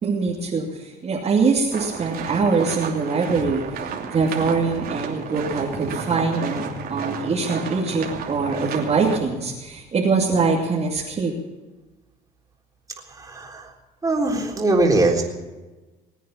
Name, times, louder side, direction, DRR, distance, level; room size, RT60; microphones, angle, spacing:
voice 1, 0.0-3.8 4.1-11.3, right 4 dB, 40° right, -3 dB, 2.7 m, -23 dB
sound 1, 1.7-9.2, right 7 dB, 65° right, 2.9 m, -32 dB
voice 2, 13.1-13.7 14.0-15.2, right 2 dB, 20° right, 0 dB, 3.9 m, -21 dB
20.5 x 9.2 x 7.2 m, 1.2 s
cardioid pair, 110°, 17 cm